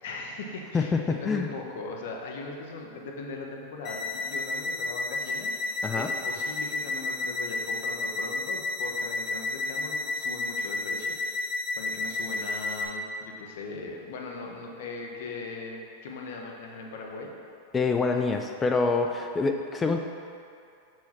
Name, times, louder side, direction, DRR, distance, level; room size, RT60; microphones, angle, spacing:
voice 1, 0.0-17.3, left 3 dB, 70° left, 1 dB, 0.9 m, -39 dB
voice 2, 0.7-1.5 5.8-6.1 17.7-20.0, left 4 dB, 20° left, 4 dB, 0.4 m, -26 dB
sound 1, 3.8-12.8, left 3 dB, 40° left, 1.1 m, -31 dB
5.8 x 4.8 x 4.3 m, 2.4 s
hypercardioid pair, 110°, 0 cm